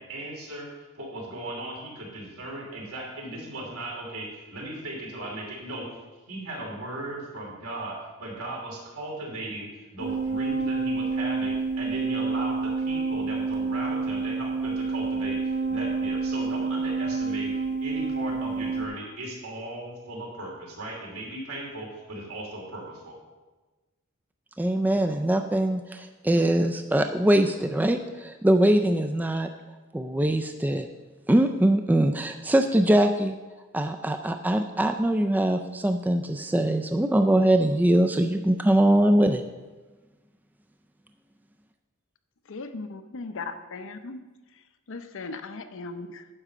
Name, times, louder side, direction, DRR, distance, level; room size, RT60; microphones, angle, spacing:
voice 1, 0.0-6.0 6.3-17.5 17.8-23.2, right 1 dB, 80° right, -2 dB, 2.8 m, -37 dB
sound 1, 10.0-18.9, right 4 dB, 35° right, 0.9 m, -28 dB
voice 2, 24.6-29.5 29.9-30.9 31.3-33.3 33.7-39.4, right 1 dB, 10° right, 6 dB, 0.3 m, -22 dB
voice 3, 42.5-46.3, left 3 dB, 60° left, 10 dB, 0.6 m, -38 dB
9.9 x 4.8 x 6.6 m, 1.2 s
head